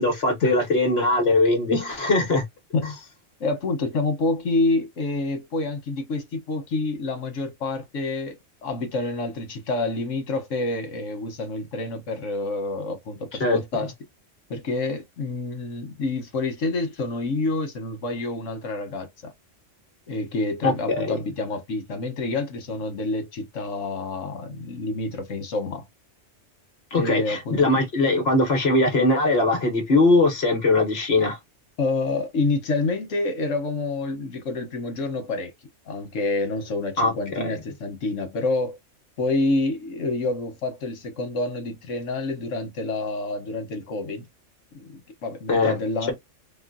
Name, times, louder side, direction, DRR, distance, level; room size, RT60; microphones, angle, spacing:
voice 1, 0.0-2.4 2.8-2.9 13.4-13.6 20.6-21.2 26.9-31.4 37.0-37.6 45.5-45.7, left 2 dB, 55° left, 1.3 m, -21 dB
voice 2, 3.4-13.9 14.5-19.3 20.1-25.9 26.9-27.7 31.8-35.5 35.9-38.8 39.2-44.2 44.7-46.1, left 2 dB, 80° left, 1.3 m, -28 dB
3.7 x 2.1 x 2.5 m
omnidirectional pair, 1.3 m